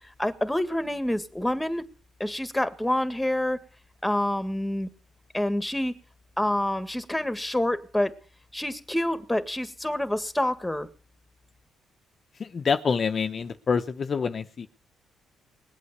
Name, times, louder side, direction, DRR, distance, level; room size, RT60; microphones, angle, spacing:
voice 1, 0.2-1.8 2.2-3.6 4.0-4.9 5.3-6.0 6.4-8.2 8.5-10.9, left 1 dB, 5° left, 10 dB, 1.8 m, -27 dB
voice 2, 12.4-14.7, left 5 dB, 45° left, 8 dB, 0.9 m, -26 dB
20.0 x 8.4 x 8.2 m, 0.40 s
cardioid pair, 90°, 0 cm